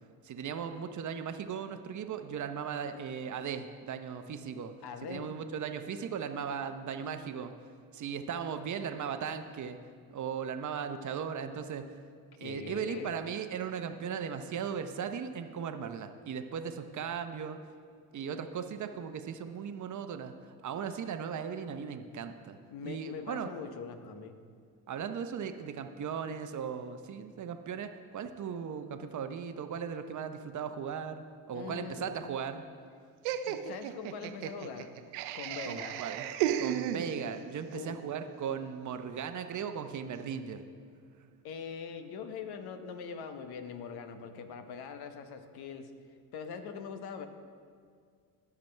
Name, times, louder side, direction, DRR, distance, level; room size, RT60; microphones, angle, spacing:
voice 1, 0.2-4.7 5.1-7.5 7.9-9.8 10.1-11.9 12.4-17.6 18.1-22.6 22.8-23.5 24.9-32.6 35.7-36.3 36.6-40.6, right 7 dB, 45° right, 8 dB, 0.8 m, -37 dB
voice 2, 4.8-5.4 12.4-13.2 22.7-24.4 31.5-32.3 33.4-34.9 35.3-36.0 37.7-38.0 41.4-45.9 46.3-47.3, left 6 dB, 65° left, 8 dB, 1.0 m, -42 dB
Laughter, 33.2-37.5, right 10 dB, 85° right, 0.6 m, -34 dB
16.5 x 6.0 x 3.3 m, 2.1 s
supercardioid pair, 75°, 41 cm